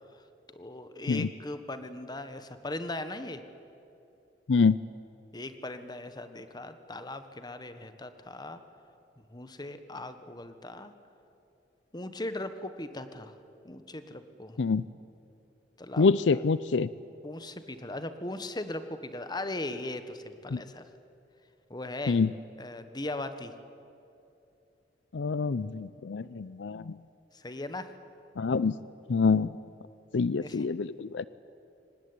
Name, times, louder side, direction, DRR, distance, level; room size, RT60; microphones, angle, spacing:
voice 1, 0.5-3.4 5.3-8.6 9.3-10.9 11.9-13.3 13.6-14.6 15.8-16.1 17.2-20.8 21.7-22.2 22.6-23.5 27.3-27.9 30.4-30.7, left 2 dB, 25° left, 10 dB, 1.3 m, -38 dB
voice 2, 4.5-4.8 14.6-14.9 16.0-16.9 20.5-20.6 22.1-22.3 25.1-27.0 28.4-28.8 29.1-29.5 30.1-31.2, left 4 dB, 75° left, 17 dB, 0.5 m, -26 dB
24.0 x 19.0 x 9.6 m, 2.7 s
head